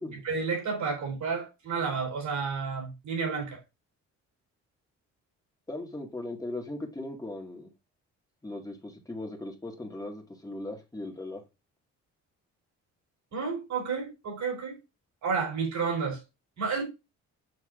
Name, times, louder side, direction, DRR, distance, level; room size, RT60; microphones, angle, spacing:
voice 1, 0.2-3.6 13.3-14.7 15.2-16.2 16.6-16.8, right 5 dB, 70° right, 3.4 m, -31 dB
voice 2, 5.7-7.7 8.4-11.4, left 2 dB, 10° left, 1.9 m, -38 dB
6.7 x 5.8 x 2.5 m
cardioid pair, 90°, 30 cm